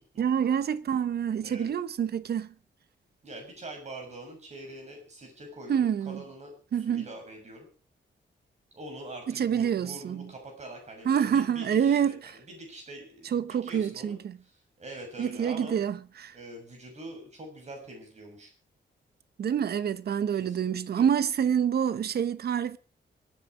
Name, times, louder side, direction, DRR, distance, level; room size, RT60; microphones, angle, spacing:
voice 1, 0.2-2.5 5.7-6.2 6.7-7.1 9.3-10.3 11.0-12.4 13.3-14.4 15.2-16.4 19.4-22.8, right 8 dB, 55° right, 0.9 m, -27 dB
voice 2, 1.4-1.7 3.2-6.5 6.9-7.7 8.7-14.2 14.8-15.8 16.3-18.5 20.5-21.0, right 1 dB, 35° right, 6.6 m, -44 dB
24.0 x 9.1 x 4.8 m
wide cardioid pair, 160°, 19 cm